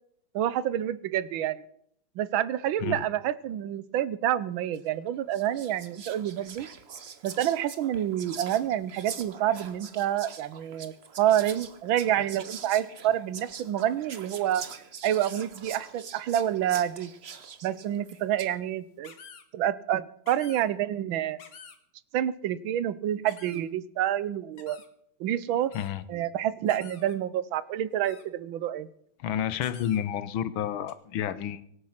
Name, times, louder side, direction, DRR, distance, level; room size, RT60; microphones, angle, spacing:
voice 1, 0.3-1.6 2.2-6.7 7.2-14.6 15.0-17.1 17.6-19.1 19.5-21.4 22.1-24.8 25.2-25.7 26.1-28.9, right 11 dB, 75° right, 17 dB, 1.5 m, -28 dB
Whispering, 4.7-5.0 5.3-18.6, right 6 dB, 40° right, 0.9 m, -44 dB
sound 1, 19.0-19.4 20.3-20.6 21.4-21.8 23.3-23.6 24.6-24.9 25.7-25.9 26.7-27.2 28.0-28.2 29.6-30.0 30.9-31.0, left 6 dB, 55° left, 2.0 m, -49 dB
voice 2, 29.2-31.6, left 9 dB, 80° left, 15 dB, 1.7 m, -30 dB
24.0 x 8.6 x 5.9 m, 0.70 s
omnidirectional pair, 2.2 m